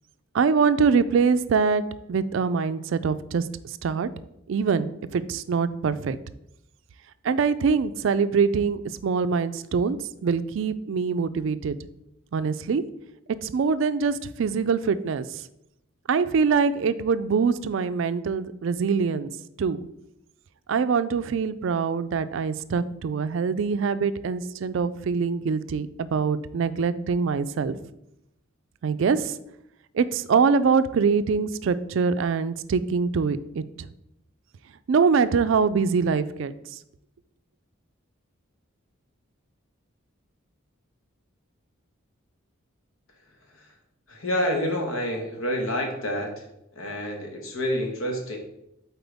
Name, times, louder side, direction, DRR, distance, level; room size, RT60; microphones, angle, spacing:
voice 1, 0.3-1.8 2.1-4.1 4.5-6.2 7.2-11.8 12.3-12.8 13.4-15.4 16.1-19.3 19.6-19.8 20.7-27.8 28.8-29.4 29.9-33.9 34.9-36.5, right 5 dB, 65° right, 13 dB, 0.3 m, -24 dB
voice 2, 44.1-46.5 46.7-48.4, equal, 80° left, 2 dB, 1.4 m, -28 dB
7.8 x 4.4 x 3.5 m, 0.82 s
head